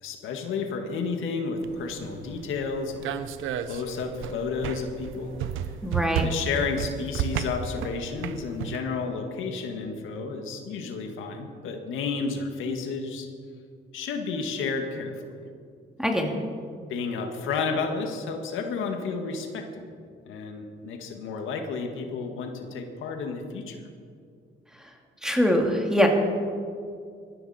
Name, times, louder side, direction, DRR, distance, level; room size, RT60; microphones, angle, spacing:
voice 1, 0.0-3.2 3.6-5.3 6.2-13.3 13.9-15.5 16.9-19.9 20.3-23.8, left 4 dB, 85° left, 4 dB, 1.9 m, -31 dB
sound 1, 1.6-8.8, right 9 dB, 85° right, 0.8 m, -33 dB
voice 2, 5.8-6.3 16.0-16.3 25.2-26.1, equal, 5° right, 1 dB, 2.6 m, -23 dB
20.5 x 14.5 x 4.4 m, 2.2 s
cardioid pair, 90°, 20 cm